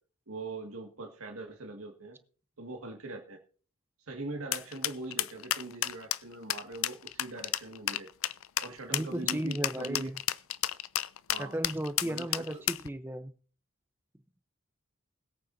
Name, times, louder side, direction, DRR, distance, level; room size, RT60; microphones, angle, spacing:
voice 1, 0.3-2.2 2.6-3.4 4.1-8.1 8.6-10.1 11.3-11.5 12.0-12.6, right 3 dB, 90° right, 2 dB, 1.9 m, -42 dB
sound 1, 4.5-12.9, left 13 dB, 75° left, 0.5 m, -31 dB
voice 2, 8.9-10.1 11.4-13.3, right 1 dB, 10° right, 11 dB, 0.6 m, -35 dB
21.0 x 8.6 x 2.7 m, 0.41 s
head